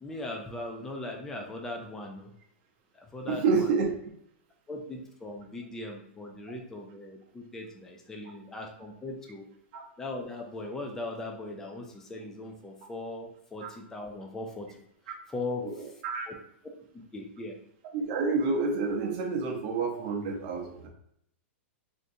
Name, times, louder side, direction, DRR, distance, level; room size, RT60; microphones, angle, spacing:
voice 1, 0.0-2.3 3.0-3.7 4.7-9.5 10.0-16.3 17.1-17.6, left 2 dB, 5° left, 1 dB, 0.4 m, -39 dB
voice 2, 3.3-3.9 9.7-9.8 13.6-13.7 15.6-15.7 16.0-16.3 17.9-20.9, right 4 dB, 40° right, 1 dB, 0.7 m, -28 dB
3.6 x 2.5 x 2.6 m, 0.74 s
supercardioid pair, 160°, 7 cm